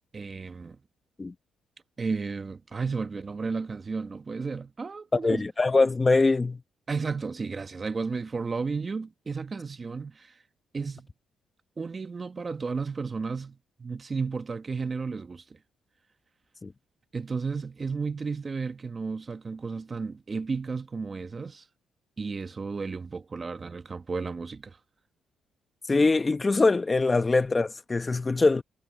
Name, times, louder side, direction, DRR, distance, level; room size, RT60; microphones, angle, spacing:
voice 1, 0.1-0.8 2.0-5.4 6.9-10.4 10.7-11.1 11.8-15.6 17.1-21.7 22.2-24.8, right 4 dB, 35° right, 1.1 m, -33 dB
voice 2, 5.2-6.6 16.6-16.7 25.9-28.6, left 3 dB, 25° left, 0.9 m, -23 dB
cardioid pair, 90°, 0 cm